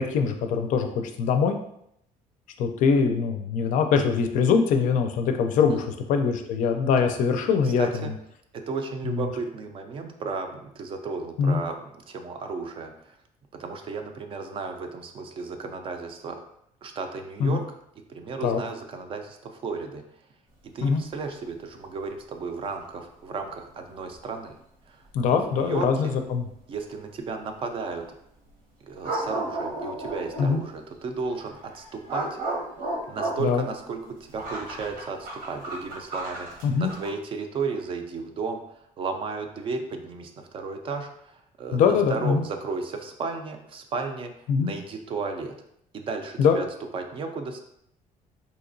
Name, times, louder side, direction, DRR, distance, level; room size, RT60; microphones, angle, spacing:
voice 1, 0.0-1.6 2.6-8.1 9.0-9.3 11.4-11.6 17.4-17.6 18.4-18.6 20.8-21.0 25.1-26.5 30.4-30.6 33.4-33.6 36.6-36.9 41.7-42.4 44.5-44.7 46.4-46.6, left 6 dB, 65° left, 6 dB, 0.4 m, -23 dB
voice 2, 7.6-8.1 8.7-13.2 13.5-16.4 16.8-17.6 18.1-20.0 20.7-24.5 24.9-26.1 26.7-28.0 28.9-32.4 33.1-34.0 34.3-44.3 44.6-45.6 45.9-46.7 46.9-47.6, right 4 dB, 40° right, 6 dB, 0.4 m, -34 dB
sound 1, 24.1-24.2 25.2-25.3 29.0-30.6 31.3-37.1, right 2 dB, 85° right, 1.0 m, -34 dB
4.0 x 2.8 x 2.6 m, 0.74 s
cardioid pair, 165°, 14 cm